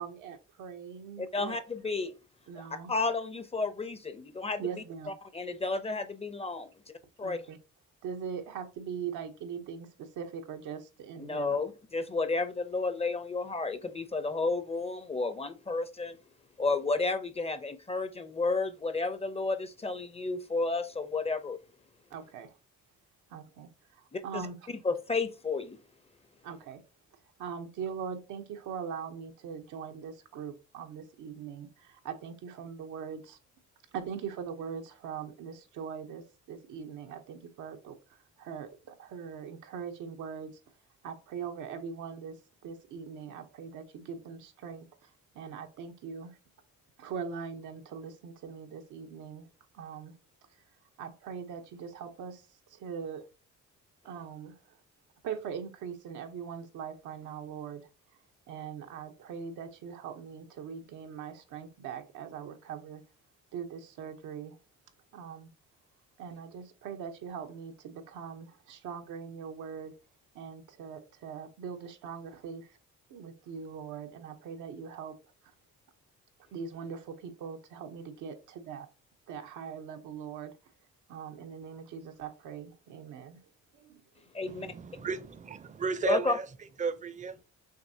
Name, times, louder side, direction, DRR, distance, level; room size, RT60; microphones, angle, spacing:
voice 1, 0.0-1.6 2.5-2.9 4.6-5.1 7.2-7.6 8.0-11.6 22.1-22.5 23.3-24.7 26.4-26.8 27.4-33.4 33.9-40.6 41.0-45.1 45.3-46.4 47.0-49.5 49.7-50.1 51.0-53.3 54.0-54.8 55.2-57.9 58.5-63.0 63.5-64.6 65.1-65.5 66.2-69.9 70.3-72.7 73.1-75.2 76.5-78.9 79.3-80.5 81.1-83.4 83.7-84.0, right 7 dB, 85° right, 0.9 m, -41 dB
voice 2, 1.2-2.1 2.6-2.7 2.9-4.7 5.3-6.7 7.2-7.4 11.2-16.2 16.6-21.6 24.1-24.4 24.7-25.8 84.3-84.7 86.1-86.3, left 3 dB, 20° left, 0.6 m, -32 dB
voice 3, 84.5-87.4, right 5 dB, 25° right, 0.5 m, -34 dB
6.4 x 2.7 x 2.7 m
cardioid pair, 90°, 30 cm